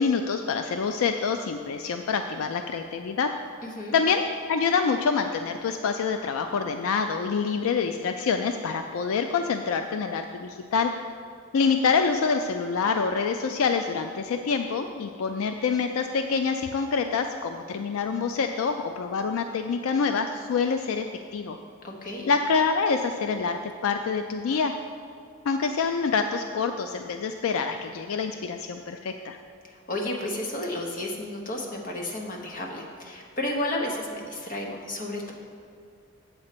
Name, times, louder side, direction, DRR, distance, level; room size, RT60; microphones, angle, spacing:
voice 1, 0.0-3.3 3.9-4.2 4.5-10.9 11.5-21.1 21.3-21.6 22.3-24.7 25.5-29.4, left 5 dB, 75° left, 6 dB, 0.4 m, -26 dB
voice 2, 3.6-4.0 21.8-22.3 29.6-35.3, left 1 dB, 40° left, 0 dB, 1.0 m, -32 dB
7.9 x 4.2 x 6.7 m, 2.3 s
head